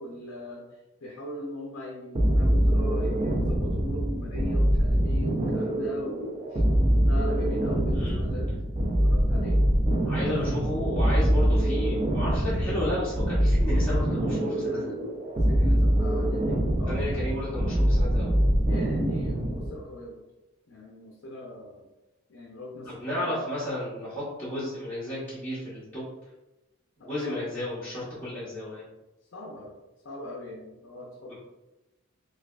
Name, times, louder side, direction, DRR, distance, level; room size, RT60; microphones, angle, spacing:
voice 1, 0.0-6.7 7.1-8.5 9.0-9.6 10.2-10.4 15.5-17.3 18.7-20.2 20.7-21.9 22.3-23.4 27.0-27.4 29.3-29.7 30.0-31.3, left 1 dB, 55° left, -2 dB, 0.5 m, -40 dB
sound 1, 2.1-19.8, equal, 25° right, 0.4 m, -24 dB
voice 2, 10.0-15.0 16.9-18.3 22.8-26.1 27.0-28.9, left 1 dB, 10° left, -12 dB, 0.9 m, -33 dB
4.8 x 2.3 x 2.3 m, 1.0 s
head